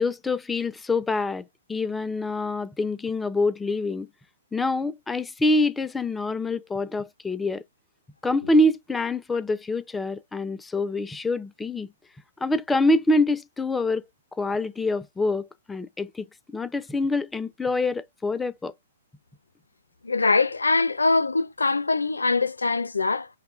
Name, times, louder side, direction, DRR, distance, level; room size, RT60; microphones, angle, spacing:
voice 1, 0.0-1.4 1.7-4.1 4.5-7.6 8.2-11.9 12.4-14.0 14.3-16.3 16.5-18.7, left 2 dB, 10° left, 0.3 m, -25 dB
voice 2, 20.0-23.3, left 3 dB, 85° left, 0.4 m, -23 dB
5.7 x 2.2 x 2.4 m
figure-of-eight pair, 120°, 0 cm